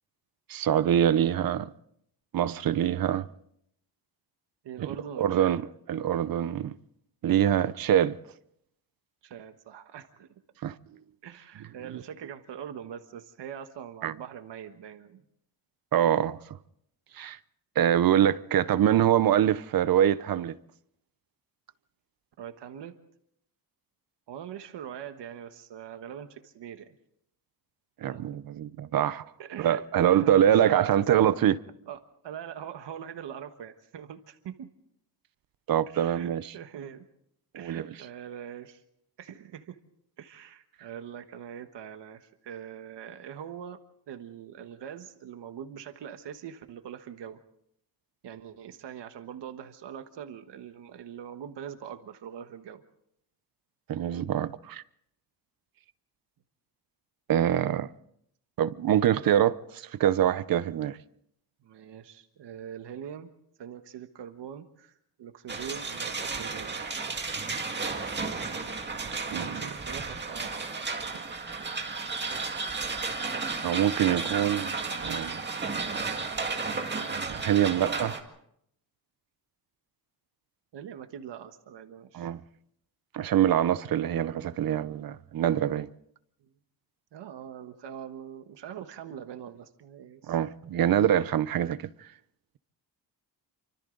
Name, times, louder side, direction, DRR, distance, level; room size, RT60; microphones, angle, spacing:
voice 1, 0.5-1.7 2.3-3.2 4.8-4.9 5.2-5.6 5.9-6.7 7.2-8.2 10.6-10.8 14.0-14.1 15.9-16.4 17.1-17.4 17.8-20.6 28.0-29.2 29.6-31.6 35.7-36.5 37.6-37.9 53.9-54.8 57.3-57.9 58.6-61.0 69.3-69.6 73.6-74.7 75.0-75.4 77.1-78.1 82.1-82.4 83.1-85.9 90.3-91.8, right 10 dB, 55° right, 0.8 m, -24 dB
voice 2, 4.6-5.6 9.2-10.3 11.2-15.2 22.4-22.9 24.3-27.0 28.0-28.3 29.4-31.3 31.9-34.7 35.9-37.0 37.5-38.8 39.2-39.8 40.2-47.4 48.2-52.8 61.6-63.3 63.6-66.7 69.5-71.2 76.5-76.6 80.7-82.3 86.4-86.5 87.1-90.3, right 9 dB, 80° right, 1.5 m, -43 dB
sound 1, 65.5-78.2, right 4 dB, 25° right, 2.0 m, -33 dB
28.5 x 25.0 x 3.9 m
wide cardioid pair, 180°, 41 cm